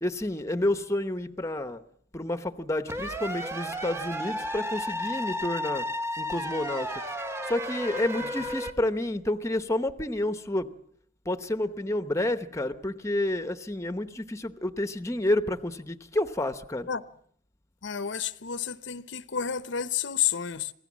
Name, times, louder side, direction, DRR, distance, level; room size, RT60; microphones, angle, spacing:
voice 1, 0.0-1.8 2.1-5.9 6.2-6.9 7.4-10.7 11.3-16.9, left 1 dB, 15° left, 0.9 m, -29 dB
sound 1, 2.9-8.7, equal, 15° right, 1.3 m, -33 dB
voice 2, 17.8-20.7, left 8 dB, 70° left, 0.8 m, -30 dB
26.5 x 17.5 x 7.4 m
head